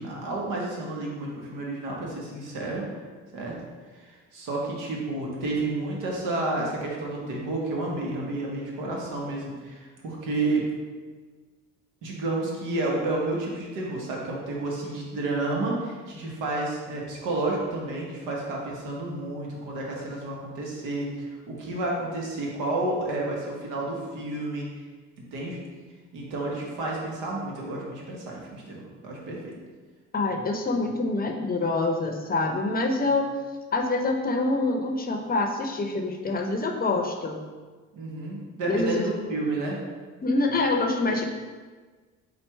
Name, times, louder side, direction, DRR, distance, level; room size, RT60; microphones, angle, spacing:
voice 1, 0.0-2.8 3.3-3.5 3.9-10.7 12.0-24.7 25.2-25.6 26.1-29.5 37.9-39.8, right 2 dB, 85° right, -2 dB, 1.1 m, -30 dB
voice 2, 30.1-33.3 33.7-37.4 38.7-39.1 40.2-41.4, left 2 dB, 30° left, 3 dB, 0.6 m, -26 dB
4.3 x 2.5 x 4.4 m, 1.4 s
supercardioid pair, 80°, 31 cm